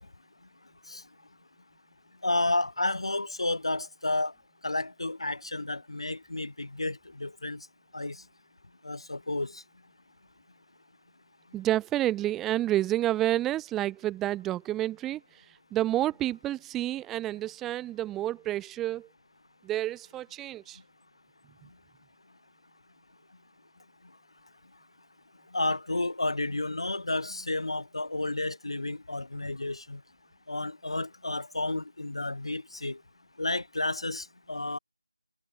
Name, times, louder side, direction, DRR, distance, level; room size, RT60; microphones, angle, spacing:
voice 1, 2.2-4.3 4.6-7.6 7.9-8.2 8.8-9.6 25.5-30.0 30.5-33.0 33.4-34.8, left 2 dB, 60° left, 5.4 m, -31 dB
voice 2, 11.5-15.2 15.7-19.1 19.6-20.8, right 14 dB, 5° right, 1.8 m, -29 dB
figure-of-eight pair, 180°, 3 cm